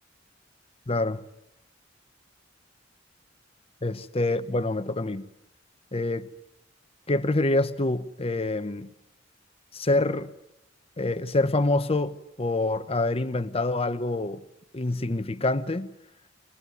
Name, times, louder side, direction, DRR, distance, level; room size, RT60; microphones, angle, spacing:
voice 1, 0.9-1.2 3.8-5.3 5.9-6.3 7.1-8.9 9.7-10.3 11.0-14.4 14.7-15.9, left 2 dB, 30° left, 1.0 m, -26 dB
23.0 x 20.0 x 9.5 m
head